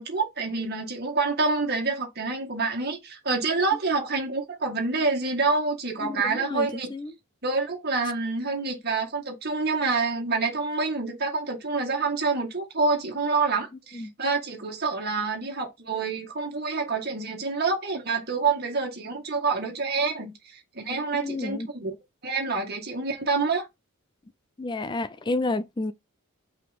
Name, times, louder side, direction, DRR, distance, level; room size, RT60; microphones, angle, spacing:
voice 1, 0.0-6.9 7.4-21.9 22.2-23.7, right 4 dB, 50° right, 2.0 m, -27 dB
voice 2, 6.0-7.1 13.9-14.1 21.2-21.7 24.6-25.9, left 2 dB, 20° left, 0.3 m, -30 dB
5.8 x 4.9 x 3.6 m
head